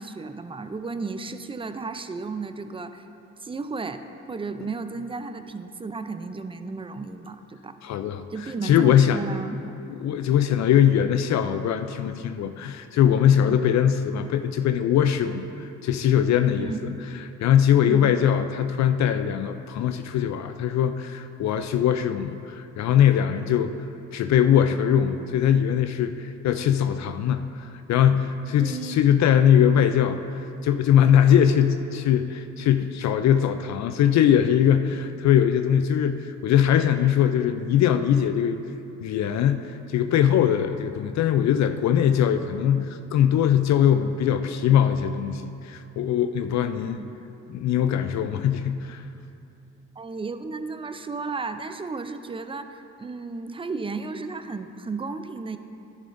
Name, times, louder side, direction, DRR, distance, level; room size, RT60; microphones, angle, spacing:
voice 1, 0.0-3.1 3.4-7.8 8.3-9.7 13.4-13.6 16.6-16.8 17.8-18.1 28.6-29.0 46.7-47.1 50.0-55.6, right 4 dB, 20° right, 9 dB, 0.4 m, -34 dB
voice 2, 7.8-9.2 9.9-16.7 17.4-23.7 24.1-38.6 39.0-47.0 47.5-49.0, left 9 dB, 65° left, 9 dB, 0.4 m, -21 dB
11.0 x 10.5 x 2.6 m, 2.8 s
cardioid pair, 90°, 30 cm